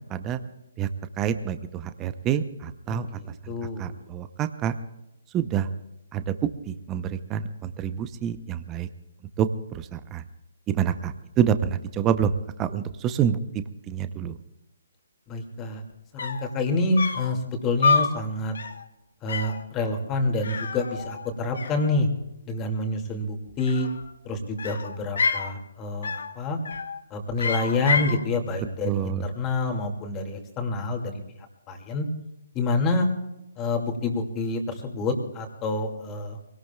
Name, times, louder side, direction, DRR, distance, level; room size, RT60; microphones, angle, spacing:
voice 1, 0.1-0.4 0.8-0.9 1.2-3.1 3.8-4.8 5.3-5.7 6.1-6.3 6.7-8.9 9.4-9.5 9.7-10.2 10.7-12.3 12.6-14.3 28.8-29.2, right 9 dB, 20° right, 11 dB, 0.7 m, -27 dB
voice 2, 2.9-3.9 15.3-15.8 16.1-18.5 19.2-22.1 22.5-23.9 24.2-26.6 27.1-31.1 31.7-32.1 32.5-33.1 33.6-36.4, left 2 dB, 20° left, 3 dB, 2.4 m, -27 dB
sound 1, 15.9-16.0 16.2-16.5 17.0-17.3 17.8-18.2 18.5-18.8 19.3-19.6 20.4-21.3 21.5-22.3 23.5-24.1 24.6-25.5 26.0-26.3 26.6-27.0 27.4-28.2, left 4 dB, 70° left, 1.7 m, -28 dB
23.5 x 18.0 x 2.4 m, 0.91 s
hypercardioid pair, 145°, 0 cm